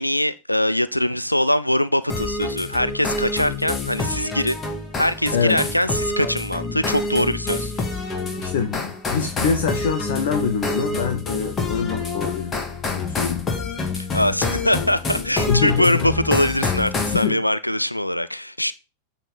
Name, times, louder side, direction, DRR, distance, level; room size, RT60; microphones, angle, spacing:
voice 1, 0.0-4.6 5.0-7.9 14.1-18.7, left 1 dB, 90° left, 0.4 m, -22 dB
sound 1, 2.1-17.3, left 3 dB, 20° left, 2.0 m, -27 dB
voice 2, 8.4-12.6 12.9-13.4 15.5-16.1 17.1-17.4, left 6 dB, 55° left, 1.2 m, -24 dB
8.9 x 4.3 x 5.3 m
figure-of-eight pair, 90°, 0 cm